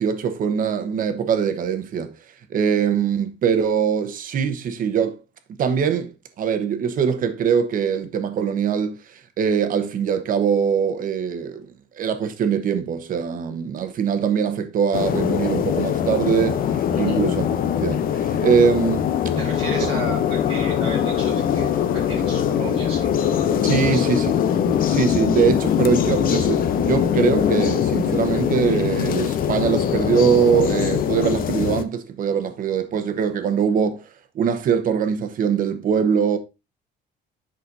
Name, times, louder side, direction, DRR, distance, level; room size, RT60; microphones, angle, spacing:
voice 1, 0.0-2.1 2.5-5.2 5.6-9.0 9.4-11.6 11.9-16.6 16.9-19.1 23.6-24.3 24.6-34.0 34.3-36.4, right 7 dB, 45° right, 1.0 m, -22 dB
sound 1, 14.9-31.8, left 9 dB, 50° left, 0.7 m, -22 dB
voice 2, 19.4-23.1 23.8-24.1, right 3 dB, 30° right, 1.1 m, -33 dB
8.5 x 6.1 x 2.6 m
cardioid pair, 155°, 19 cm